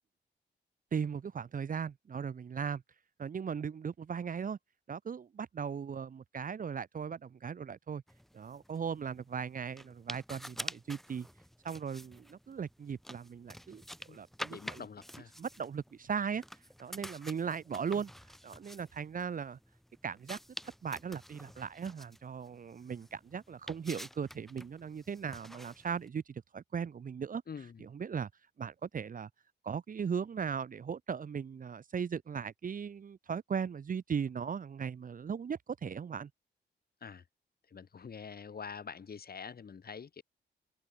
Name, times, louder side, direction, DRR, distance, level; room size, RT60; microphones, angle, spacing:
voice 1, 0.9-2.8 3.2-4.6 4.9-8.0 8.3-11.3 11.6-13.8 14.1-14.9 15.4-16.4 16.8-18.1 18.4-19.6 20.0-20.4 20.8-27.4 27.8-28.3 28.6-29.3 29.6-36.3, right 6 dB, 45° right, 0.9 m, -38 dB
sound 1, 8.1-26.1, equal, ahead, 3.4 m, -49 dB
voice 2, 14.5-15.3 27.5-27.9 37.0-37.2 37.7-40.2, left 6 dB, 55° left, 7.0 m, -45 dB
open air
cardioid pair, 80°, 19 cm